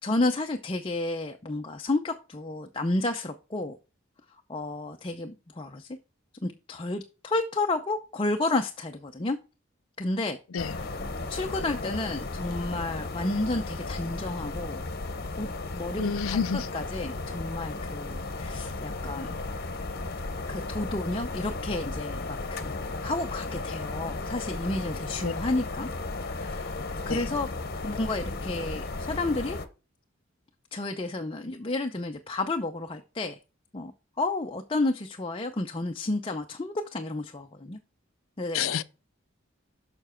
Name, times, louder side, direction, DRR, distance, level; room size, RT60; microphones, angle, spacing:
voice 1, 0.0-3.8 4.5-6.0 6.4-9.4 10.0-10.4 10.8-11.0 11.3-14.8 15.4-15.5 15.7-16.4 16.7-19.3 20.5-25.9 26.2-27.5 27.8-29.6 30.7-33.4 33.7-33.9 34.2-37.8 38.4-38.8, left 2 dB, 25° left, 0.6 m, -31 dB
sound 1, 10.6-29.7, left 3 dB, 50° left, 1.0 m, -35 dB
voice 2, 16.0-16.7 25.2-25.3 27.1-27.3 38.5-38.8, left 6 dB, 90° left, 0.6 m, -29 dB
7.0 x 5.9 x 4.4 m
head